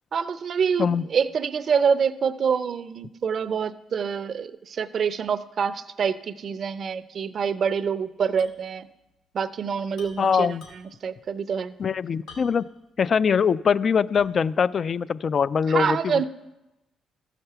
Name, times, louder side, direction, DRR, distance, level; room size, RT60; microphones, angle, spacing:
voice 1, 0.1-8.9 9.3-10.5 11.0-11.7 15.7-16.3, right 6 dB, 55° right, 13 dB, 0.5 m, -26 dB
sound 1, 8.4-8.6 8.9-9.0 9.9-11.1 12.3-12.8 13.3-13.4 14.1-14.5, left 3 dB, 75° left, 2.5 m, -48 dB
voice 2, 10.2-10.7 11.8-12.7 13.0-16.3, left 6 dB, 45° left, 18 dB, 0.3 m, -23 dB
14.0 x 5.8 x 6.7 m, 0.95 s
cardioid pair, 90°, 0 cm